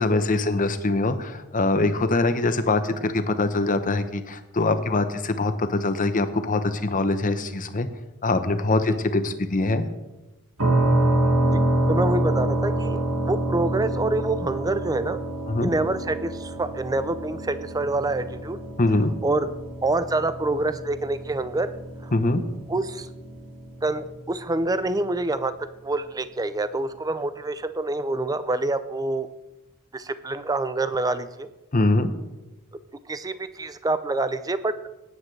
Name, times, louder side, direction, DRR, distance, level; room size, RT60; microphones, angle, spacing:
voice 1, 0.0-7.9 8.2-9.9 15.5-15.7 18.8-19.1 22.1-22.4 31.7-32.1, left 2 dB, 40° left, 10 dB, 0.9 m, -23 dB
sound 1, 10.6-24.3, right 1 dB, 70° right, 2.0 m, -27 dB
voice 2, 11.9-15.2 15.6-18.6 19.2-19.5 19.8-21.7 22.0-22.1 22.7-23.1 23.8-25.5 25.8-29.3 29.9-31.5 33.1-34.7, right 2 dB, 15° right, 12 dB, 0.5 m, -26 dB
19.5 x 9.8 x 3.3 m, 1.0 s
head